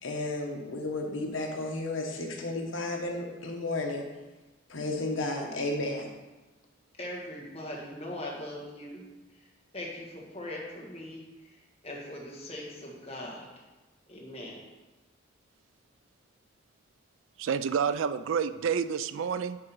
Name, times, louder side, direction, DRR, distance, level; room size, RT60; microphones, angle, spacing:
voice 1, 0.0-4.0 4.7-6.1, left 2 dB, 80° left, 2 dB, 1.2 m, -33 dB
voice 2, 7.0-9.0 9.3-9.5 9.7-13.5 14.1-14.6, left 1 dB, 30° left, -2 dB, 1.6 m, -41 dB
voice 3, 17.4-19.6, right 7 dB, 80° right, 13 dB, 0.4 m, -29 dB
10.5 x 3.8 x 4.5 m, 1.2 s
head